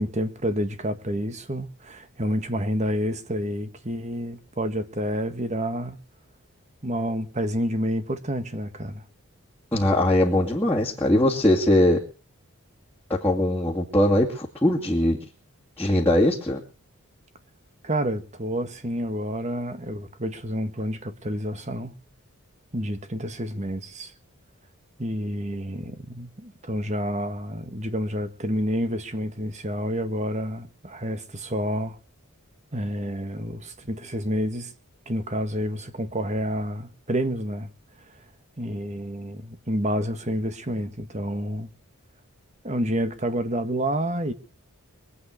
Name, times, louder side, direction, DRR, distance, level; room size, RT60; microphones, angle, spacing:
voice 1, 0.0-6.0 6.8-9.0 17.8-21.9 22.7-24.1 25.0-32.0 32.7-34.7 35.0-37.7 38.6-41.7 42.6-44.3, equal, 30° right, 1.7 m, -29 dB
voice 2, 9.7-12.0 13.1-15.2 15.8-16.6, left 1 dB, 10° left, 2.4 m, -21 dB
23.5 x 8.6 x 6.6 m
head